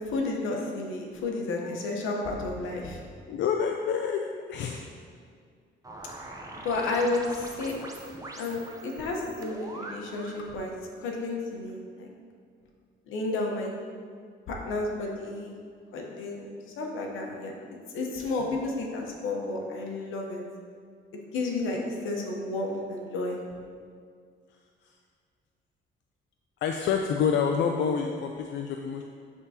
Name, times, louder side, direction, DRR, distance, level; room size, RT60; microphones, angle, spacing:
voice 1, 0.0-3.0 6.6-7.8 8.4-12.1 13.1-13.7 14.5-15.5 15.9-17.5 17.9-20.4 21.1-23.4, left 2 dB, 85° left, 0 dB, 1.0 m, -32 dB
voice 2, 3.3-4.9 26.6-29.0, left 6 dB, 65° left, 3 dB, 0.4 m, -28 dB
sound 1, 5.8-10.4, right 2 dB, 15° right, 0.7 m, -43 dB
10.5 x 3.7 x 2.8 m, 2.1 s
cardioid pair, 90°, 20 cm